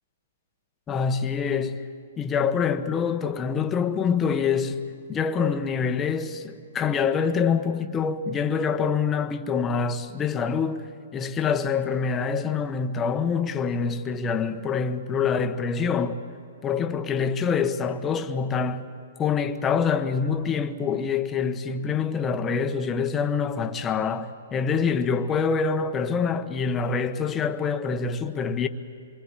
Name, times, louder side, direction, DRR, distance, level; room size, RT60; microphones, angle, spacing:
voice 1, 0.9-1.8 2.2-4.8 5.1-10.8 11.1-16.2 16.6-18.8 19.2-28.7, left 6 dB, 15° left, 1.3 m, -25 dB
27.5 x 24.0 x 8.7 m
hypercardioid pair, 145°, 0 cm